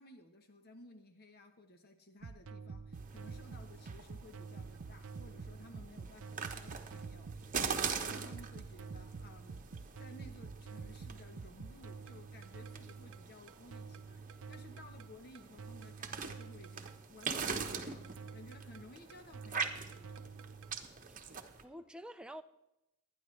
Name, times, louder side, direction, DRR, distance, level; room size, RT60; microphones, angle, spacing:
voice 1, 0.0-9.7 10.0-20.3, left 1 dB, 45° left, 1.0 m, -57 dB
sound 1, 2.2-20.8, right 5 dB, 65° right, 0.6 m, -48 dB
sound 2, 2.9-21.6, right 5 dB, 40° right, 1.1 m, -43 dB
voice 2, 21.1-22.4, equal, 5° right, 0.5 m, -49 dB
24.0 x 10.0 x 3.2 m
head